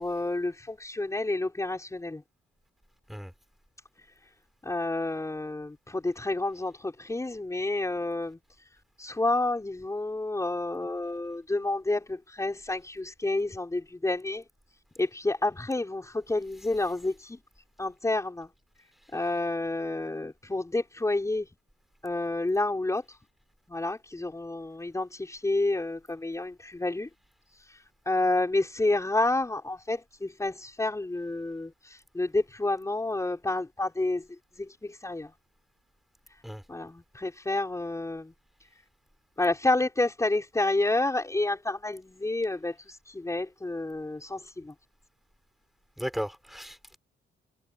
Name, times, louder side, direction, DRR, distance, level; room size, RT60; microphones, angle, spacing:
voice 1, 0.0-2.2 4.6-8.4 9.0-14.4 15.0-17.4 17.8-18.5 19.1-21.5 22.0-23.2 23.7-27.1 27.6-34.2 34.6-35.3 36.7-38.3 39.4-44.7, left 2 dB, 15° left, 5.0 m, -29 dB
voice 2, 46.0-47.0, equal, ahead, 6.6 m, -36 dB
cardioid pair, 90°, 20 cm